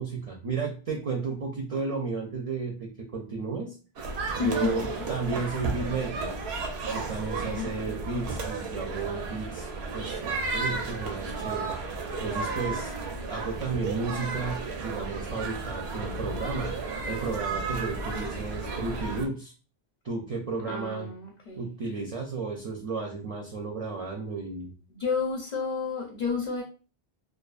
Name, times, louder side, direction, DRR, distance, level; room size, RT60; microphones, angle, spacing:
voice 1, 0.0-3.8 4.4-6.3 6.9-11.7 12.2-12.9 13.3-16.7 17.1-19.5 20.0-21.1 21.6-24.7, right 4 dB, 50° right, 0 dB, 0.4 m, -33 dB
sound 1, 4.0-19.3, right 3 dB, 90° right, 0.9 m, -33 dB
voice 2, 4.4-5.0 7.3-7.9 20.6-21.6 25.0-26.6, left 5 dB, 50° left, -3 dB, 0.7 m, -31 dB
2.5 x 2.3 x 2.3 m, 0.35 s
omnidirectional pair, 1.0 m